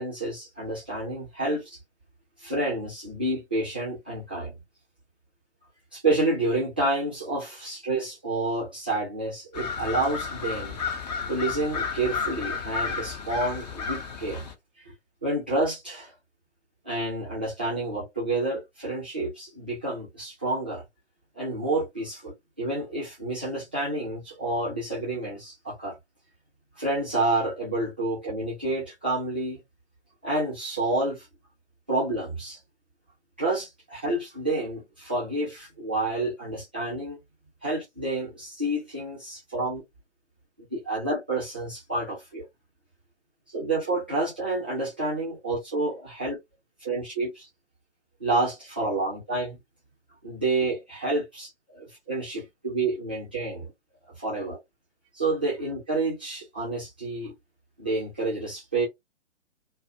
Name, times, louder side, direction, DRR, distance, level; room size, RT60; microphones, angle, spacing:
voice 1, 0.0-1.8 2.4-4.5 5.9-10.8 11.3-14.4 15.2-16.1 16.8-20.8 21.3-26.0 26.8-29.6 30.2-31.3 31.9-32.6 33.4-37.2 37.6-39.8 40.7-42.4 43.5-46.4 46.8-47.5 48.2-49.6 50.2-53.7 54.2-54.6 55.1-57.3 57.8-58.9, right 2 dB, 10° right, 0.3 m, -29 dB
sound 1, 9.5-14.5, left 5 dB, 35° left, 0.6 m, -32 dB
2.4 x 2.0 x 2.5 m
figure-of-eight pair, 125°, 36 cm